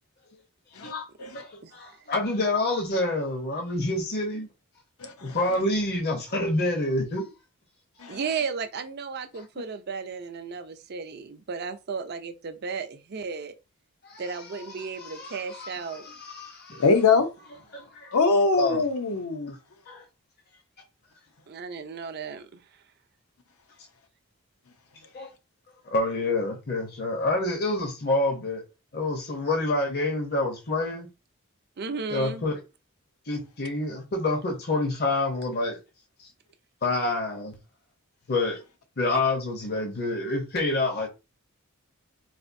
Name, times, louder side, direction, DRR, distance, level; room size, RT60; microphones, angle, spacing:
voice 1, 0.8-4.5 5.2-7.3 9.3-9.4 14.0-14.5 14.7-16.8 17.7-18.1 18.6-18.8 19.9-20.0 25.1-25.3 25.8-28.6 28.9-31.1 32.1-32.6 33.3-35.8 36.2-36.3 36.8-37.5 38.3-38.6 39.0-41.1, left 2 dB, 45° left, 0.7 m, -28 dB
voice 2, 5.0-5.4 8.0-8.2 16.8-17.3 18.1-19.6, left 4 dB, 75° left, 0.7 m, -23 dB
voice 3, 8.1-13.5 14.2-16.1 21.5-22.6 31.8-32.4, right 5 dB, 45° right, 0.4 m, -34 dB
4.1 x 2.5 x 2.6 m
head